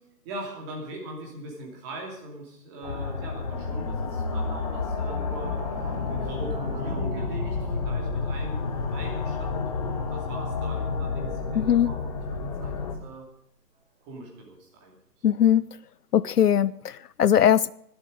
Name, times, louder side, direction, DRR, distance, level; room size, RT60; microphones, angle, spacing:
voice 1, 0.2-5.6 6.0-13.2 14.0-15.2, right 1 dB, 15° right, 2.7 m, -41 dB
sound 1, 2.8-13.0, left 4 dB, 25° left, 1.3 m, -30 dB
sound 2, 5.2-10.7 11.0-11.1 11.3-11.4 11.7-11.8, right 1 dB, 30° right, 1.2 m, -39 dB
voice 2, 11.6-11.9 15.2-15.6 16.1-17.7, left 10 dB, 70° left, 0.5 m, -20 dB
22.5 x 8.0 x 5.2 m
figure-of-eight pair, 155°, 49 cm